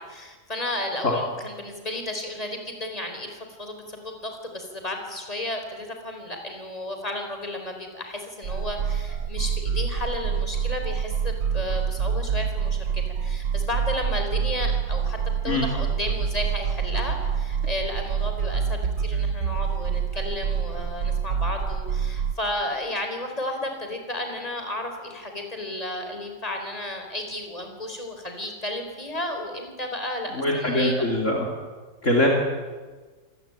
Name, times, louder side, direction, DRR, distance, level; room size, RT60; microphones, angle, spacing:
voice 1, 0.0-15.2 15.4-31.1, left 1 dB, 20° left, 4 dB, 4.4 m, -33 dB
sound 1, 8.4-22.3, right 7 dB, 75° right, 1.7 m, -27 dB
voice 2, 30.3-31.5 32.0-32.3, left 1 dB, 45° left, 0 dB, 3.5 m, -22 dB
27.0 x 19.0 x 9.0 m, 1.4 s
omnidirectional pair, 1.9 m